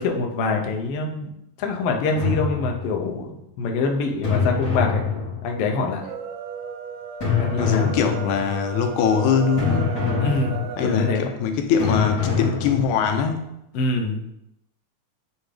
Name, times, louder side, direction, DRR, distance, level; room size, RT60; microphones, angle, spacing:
voice 1, 0.0-5.0 5.4-6.1 7.4-7.9 10.2-11.3 13.7-14.3, left 3 dB, 70° left, 2 dB, 1.5 m, -25 dB
sound 1, 2.1-3.2 4.2-5.8 7.2-8.6 9.6-11.0 11.8-13.2, left 6 dB, 30° left, 2.2 m, -25 dB
sound 2, 5.9-11.2, right 7 dB, 80° right, 1.9 m, -35 dB
voice 2, 7.6-10.0 10.8-13.5, left 6 dB, 90° left, 6 dB, 2.1 m, -22 dB
9.8 x 3.5 x 3.3 m, 0.84 s
omnidirectional pair, 3.3 m